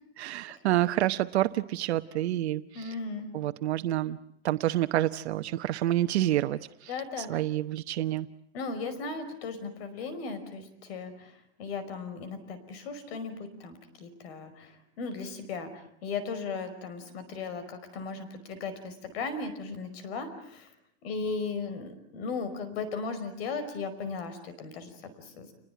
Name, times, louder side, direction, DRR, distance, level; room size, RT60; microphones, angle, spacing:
voice 1, 0.2-2.9 3.3-4.2 4.4-6.9 7.2-8.3, right 14 dB, 85° right, 9 dB, 1.0 m, -28 dB
voice 2, 2.7-3.3 6.9-7.4 8.5-11.3 11.6-15.7 16.0-20.7 21.0-25.5, left 4 dB, 70° left, 11 dB, 5.2 m, -37 dB
29.0 x 20.5 x 9.3 m, 0.73 s
supercardioid pair, 145°, 32 cm